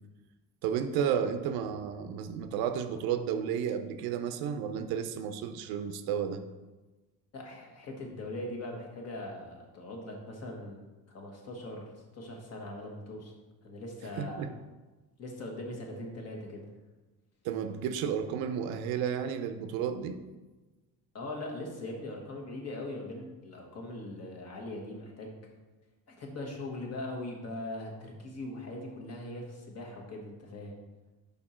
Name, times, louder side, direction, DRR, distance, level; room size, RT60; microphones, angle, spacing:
voice 1, 0.6-6.4 14.2-14.5 17.4-20.2, right 8 dB, 75° right, 9 dB, 0.6 m, -32 dB
voice 2, 7.3-10.8 11.1-13.3 13.6-14.5 15.2-16.7 21.1-25.4 26.1-30.7, left 1 dB, 40° left, 0 dB, 1.4 m, -41 dB
5.3 x 4.4 x 4.3 m, 1.2 s
cardioid pair, 130°, 37 cm